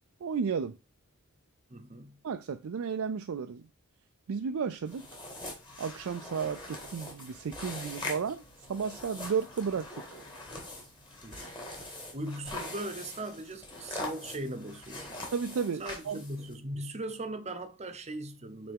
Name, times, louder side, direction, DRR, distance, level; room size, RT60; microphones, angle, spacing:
voice 1, 0.2-0.7 2.2-3.7 4.3-5.0 5.8-8.4 8.7-9.9 15.3-16.2, right 6 dB, 65° right, 0.4 m, -33 dB
voice 2, 1.7-2.2 11.2-15.2 15.8-18.7, right 1 dB, 30° right, 0.8 m, -39 dB
sound 1, 4.9-16.5, left 2 dB, 20° left, 1.9 m, -43 dB
8.5 x 3.4 x 3.5 m
head